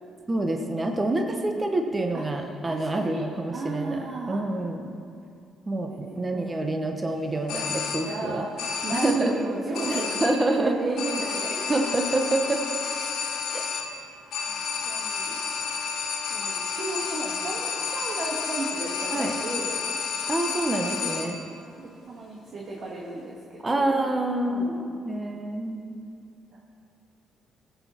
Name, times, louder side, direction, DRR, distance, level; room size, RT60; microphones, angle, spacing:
voice 1, 0.3-4.9 5.7-8.5 8.9-9.3 9.9-10.8 11.7-12.6 13.5-13.6 19.1-19.4 20.3-21.4 23.6-24.7 25.0-26.0, right 2 dB, 25° right, 4 dB, 1.0 m, -27 dB
voice 2, 2.1-3.2 3.5-4.5 5.8-6.7 8.1-12.3 13.5-13.8 14.5-14.6 14.9-15.4 16.3-19.8 21.0-21.2 21.8-24.0 24.4-25.0 26.5-26.6, right 2 dB, 55° right, -3 dB, 1.7 m, -34 dB
sound 1, 7.5-8.3 8.6-9.4 9.7-10.6 11.0-21.5, left 5 dB, 80° left, 1.4 m, -31 dB
17.5 x 8.1 x 4.4 m, 2.5 s
cardioid pair, 90°, 0 cm